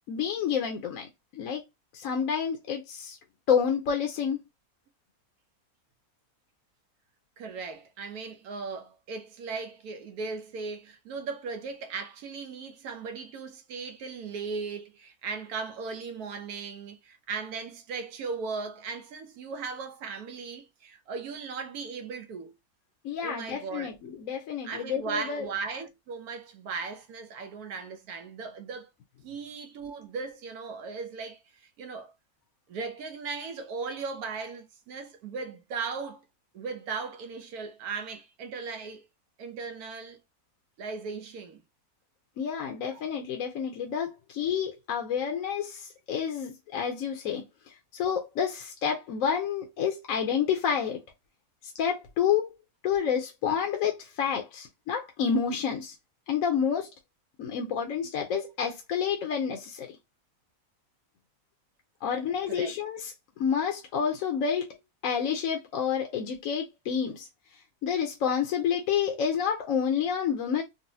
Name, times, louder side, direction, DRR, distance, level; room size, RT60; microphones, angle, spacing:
voice 1, 0.1-1.6 1.9-3.2 3.5-4.4 23.0-25.5 42.4-51.0 51.6-52.5 52.8-55.9 56.3-56.9 57.4-60.0 62.0-64.8 65.0-67.3 67.8-70.6, left 7 dB, 70° left, 1.0 m, -29 dB
voice 2, 7.4-22.5 23.2-23.9 24.6-28.9 29.2-32.1 32.7-36.2 36.5-39.1 39.4-40.2 40.8-41.6 42.9-43.0 62.5-62.7, right 5 dB, 85° right, 1.2 m, -37 dB
3.9 x 2.1 x 2.6 m
omnidirectional pair, 1.5 m